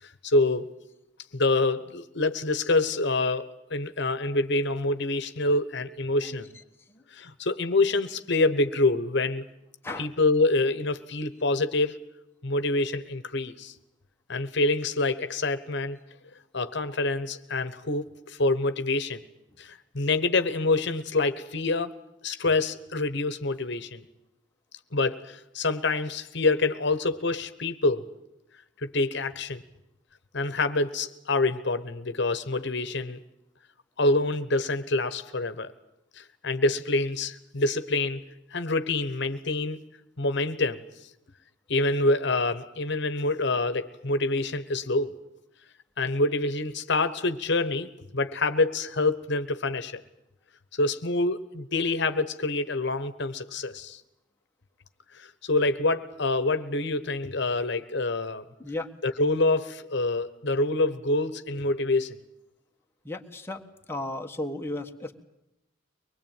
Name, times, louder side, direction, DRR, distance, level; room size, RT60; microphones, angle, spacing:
voice 1, 0.0-0.7 1.3-6.5 7.1-9.4 10.0-12.0 12.4-13.7 14.3-16.0 16.5-19.2 19.6-21.9 22.2-24.0 24.9-28.0 28.8-29.6 30.3-33.2 34.0-35.7 36.2-38.2 38.5-39.8 40.2-40.8 41.7-45.1 46.0-50.0 50.7-54.0 55.1-58.4 59.0-62.2, left 2 dB, 65° left, 11 dB, 1.2 m, -26 dB
voice 2, 63.0-63.6 63.9-65.2, left 2 dB, 10° left, 2 dB, 1.5 m, -34 dB
24.0 x 21.0 x 9.1 m, 0.87 s
head